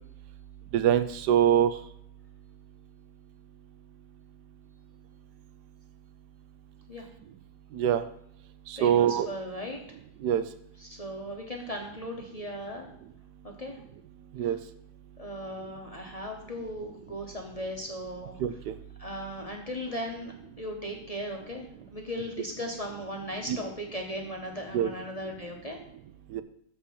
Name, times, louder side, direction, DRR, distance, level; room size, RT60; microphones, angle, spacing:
voice 1, 0.7-1.7 7.7-8.0 8.7-9.3 10.2-10.4 14.4-14.6 18.4-18.7 24.7-24.9 26.3-26.4, right 10 dB, 85° right, 11 dB, 1.2 m, -23 dB
voice 2, 8.7-9.8 10.8-12.9 13.4-13.8 14.4-14.5 15.2-18.4 19.0-25.8, equal, 25° left, 0 dB, 0.9 m, -37 dB
7.4 x 4.7 x 6.6 m, 0.72 s
omnidirectional pair, 1.7 m